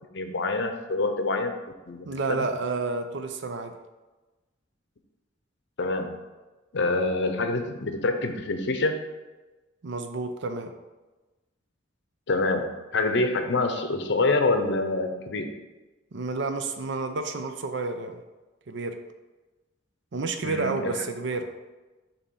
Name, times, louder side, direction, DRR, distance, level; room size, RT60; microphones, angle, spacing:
voice 1, 0.1-1.5 1.9-2.5 5.8-6.1 6.7-9.0 12.3-15.5 20.4-21.0, left 3 dB, 60° left, 6 dB, 0.7 m, -26 dB
voice 2, 2.0-3.7 9.8-10.7 16.1-18.2 18.7-19.0 20.1-21.5, right 3 dB, 60° right, 7 dB, 0.6 m, -30 dB
7.0 x 2.9 x 5.3 m, 1.2 s
head